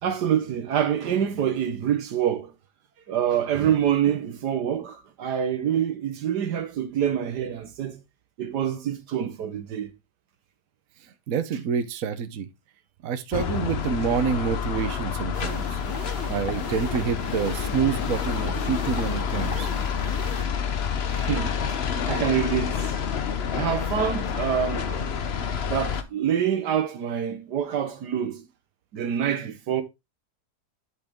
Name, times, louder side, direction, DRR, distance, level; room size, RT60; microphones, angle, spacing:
voice 1, 0.0-2.5 3.1-8.0 8.4-9.9 16.4-16.5 18.5-18.7 19.2-19.5 21.1-22.9 23.5-25.3 25.7-28.4 28.9-29.8, right 9 dB, 75° right, 1.6 m, -26 dB
voice 2, 11.3-12.5 13.0-15.8 16.3-19.7, right 7 dB, 60° right, 1.2 m, -27 dB
sound 1, 13.3-26.0, left 7 dB, 50° left, 0.8 m, -28 dB
sound 2, 15.3-20.4, left 2 dB, 10° left, 2.0 m, -37 dB
11.0 x 4.7 x 3.6 m
omnidirectional pair, 1.8 m